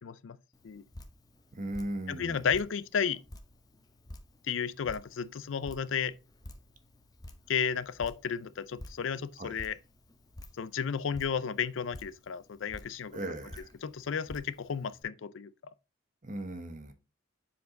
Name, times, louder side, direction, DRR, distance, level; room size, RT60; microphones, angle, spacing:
voice 1, 0.0-0.4 0.6-0.8 2.1-3.2 4.4-6.1 7.5-9.8 10.6-13.3 13.8-15.5, left 7 dB, 75° left, 0.5 m, -33 dB
Drip, 0.5-15.0, left 1 dB, 20° left, 0.8 m, -51 dB
voice 2, 1.5-2.4 9.4-9.6 13.1-13.7 16.2-16.9, right 1 dB, 40° right, 1.0 m, -38 dB
7.3 x 4.7 x 3.8 m
head